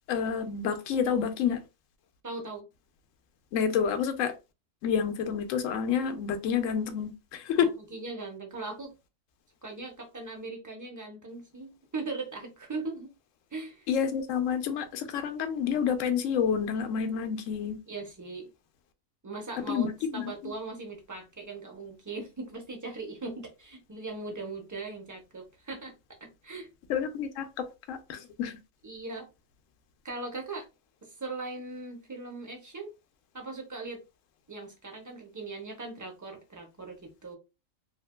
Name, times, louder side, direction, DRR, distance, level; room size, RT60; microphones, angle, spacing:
voice 1, 0.1-1.6 3.5-4.3 4.8-7.7 13.9-17.8 19.6-20.5 26.9-28.6, left 7 dB, 75° left, 0.9 m, -29 dB
voice 2, 2.2-2.7 7.5-8.9 9.6-13.1 13.5-13.9 17.9-18.5 19.2-25.9 26.2-26.7 28.8-29.3 30.0-30.6 31.0-32.9 33.3-34.0 34.5-37.4, right 3 dB, 20° right, 0.5 m, -39 dB
3.1 x 2.8 x 2.2 m
omnidirectional pair, 1.4 m